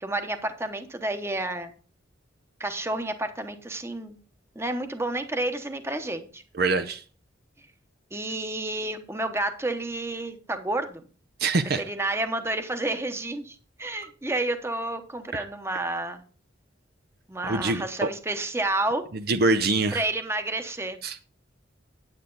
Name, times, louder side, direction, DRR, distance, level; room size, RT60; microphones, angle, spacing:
voice 1, 0.0-1.7 2.6-4.1 4.5-6.4 8.1-11.0 11.7-16.2 17.3-19.0 19.9-21.2, right 2 dB, 15° right, 0.9 m, -30 dB
voice 2, 6.5-7.0 11.4-11.8 15.3-15.4 17.5-18.1 19.3-20.0 21.0-21.2, right 3 dB, 50° right, 0.6 m, -24 dB
9.3 x 9.0 x 3.9 m
head